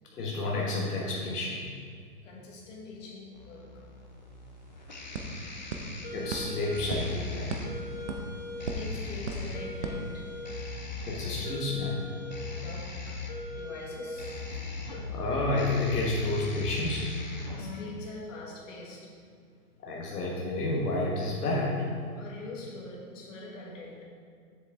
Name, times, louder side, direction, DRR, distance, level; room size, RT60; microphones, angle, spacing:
voice 1, 0.1-1.7 6.1-7.5 11.1-12.0 15.1-17.1 19.8-21.9, left 2 dB, 80° left, -3 dB, 1.5 m, -30 dB
voice 2, 2.2-3.8 5.0-5.7 8.4-10.3 10.6-10.7 12.4-13.2 13.5-14.7 15.0-15.1 17.6-19.3 19.8-19.9 22.1-24.0, left 2 dB, 55° left, -3 dB, 1.9 m, -44 dB
sound 1, 3.3-17.8, left 3 dB, 35° left, 0.4 m, -39 dB
sound 2, 4.0-4.1 4.4-10.8, right 2 dB, 50° right, 0.8 m, -39 dB
7.2 x 6.8 x 3.5 m, 2.2 s
hypercardioid pair, 160°, 45 cm